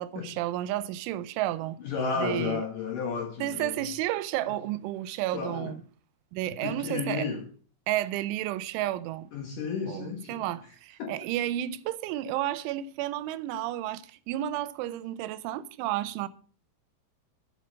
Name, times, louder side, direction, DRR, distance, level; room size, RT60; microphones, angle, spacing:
voice 1, 0.0-1.8 2.2-2.6 3.4-5.8 6.3-7.3 7.9-9.3 9.9-16.3, right 13 dB, 85° right, 3.1 m, -32 dB
voice 2, 1.8-3.8 4.5-4.6 5.3-5.7 6.6-7.5 9.3-10.4 11.0-11.2, left 5 dB, 65° left, 2.2 m, -32 dB
11.5 x 7.3 x 6.2 m
omnidirectional pair, 5.4 m